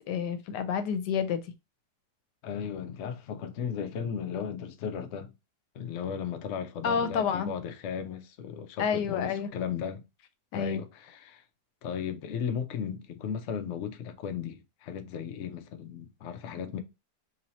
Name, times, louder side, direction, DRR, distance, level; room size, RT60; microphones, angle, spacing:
voice 1, 0.1-1.4 6.8-7.5 8.8-9.5 10.5-10.8, left 7 dB, 80° left, 1.2 m, -29 dB
voice 2, 2.4-5.3 5.7-10.0 10.5-11.4 11.8-16.8, left 7 dB, 65° left, 0.7 m, -35 dB
3.1 x 2.7 x 4.1 m
omnidirectional pair, 1.8 m